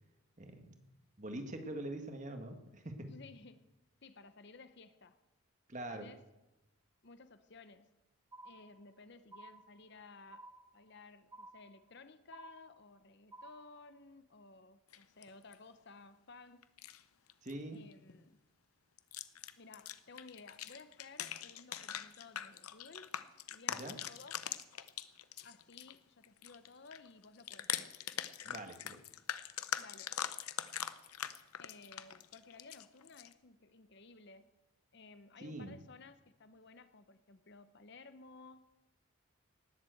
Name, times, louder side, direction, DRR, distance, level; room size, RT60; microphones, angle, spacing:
voice 1, 0.4-0.9 1.2-3.1 5.7-6.1 17.4-17.8 23.7-24.0 28.4-29.0 35.4-35.8, right 1 dB, 35° right, 6 dB, 1.6 m, -44 dB
voice 2, 3.0-3.7 4.0-5.2 5.9-6.2 7.0-7.9 8.4-10.5 10.7-16.7 17.7-18.4 19.6-23.1 23.5-24.5 25.4-28.0 29.8-30.2 31.6-34.6 34.9-38.6, left 3 dB, 50° left, 11 dB, 0.8 m, -56 dB
sound 1, 8.3-9.0 9.3-10.0 10.3-11.0 11.3-12.0 12.3-13.0 13.3-14.0, right 2 dB, 15° right, 2.3 m, -54 dB
sound 2, 14.9-15.6 16.6-17.0 17.3-17.5 17.9-18.1 19.0-26.0 26.2-33.3, left 10 dB, 85° left, 0.8 m, -42 dB
19.0 x 7.5 x 7.8 m, 1.0 s
head